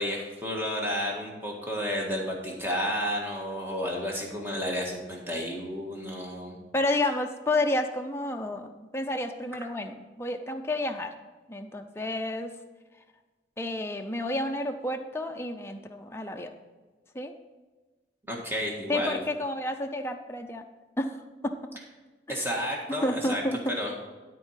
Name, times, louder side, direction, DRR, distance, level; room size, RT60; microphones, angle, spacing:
voice 1, 0.0-6.6 18.2-19.2 22.3-23.4 23.7-24.0, equal, 10° right, -1 dB, 1.6 m, -31 dB
voice 2, 6.7-11.1 11.5-12.6 13.6-16.5 17.1-17.3 18.9-20.6 21.0-21.6 22.3-22.5 22.9-23.7, left 1 dB, 15° left, 4 dB, 0.6 m, -30 dB
13.0 x 4.5 x 5.7 m, 1.2 s
head